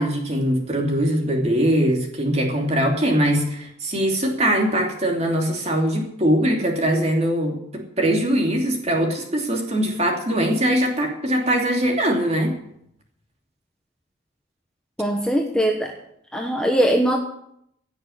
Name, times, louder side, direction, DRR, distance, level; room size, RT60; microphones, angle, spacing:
voice 1, 0.0-12.5, right 1 dB, 35° right, 1 dB, 2.9 m, -21 dB
voice 2, 15.0-15.9 16.3-17.2, right 1 dB, 5° left, 1 dB, 1.1 m, -21 dB
16.5 x 6.7 x 9.4 m, 0.75 s
head